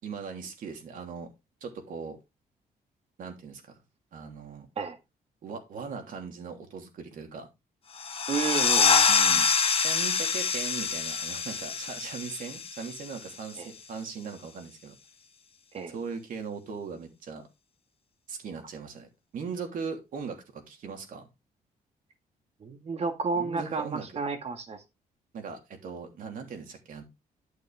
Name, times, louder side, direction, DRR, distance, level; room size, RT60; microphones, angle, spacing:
voice 1, 0.0-1.3 1.6-2.2 3.2-3.7 4.1-4.7 5.4-7.5 9.1-9.5 9.8-14.9 15.9-17.5 18.3-19.1 19.3-21.3 23.4-24.2 25.3-27.0, right 5 dB, 60° right, 3.1 m, -39 dB
sound 1, 7.9-13.3, left 6 dB, 40° left, 1.3 m, -26 dB
voice 2, 8.3-9.1 13.6-13.7 15.7-15.9 22.6-24.8, right 4 dB, 45° right, 1.8 m, -31 dB
11.5 x 6.6 x 3.4 m
cardioid pair, 130°, 15 cm